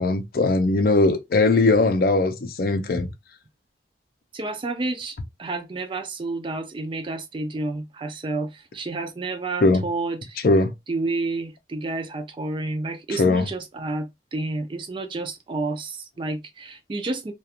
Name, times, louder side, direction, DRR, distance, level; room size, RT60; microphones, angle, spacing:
voice 1, 0.0-3.1 9.6-9.8 10.4-10.7 13.2-13.4, left 2 dB, 55° left, 0.5 m, -19 dB
voice 2, 4.3-10.4 10.9-17.3, right 2 dB, 30° right, 0.4 m, -30 dB
2.4 x 2.2 x 2.7 m
head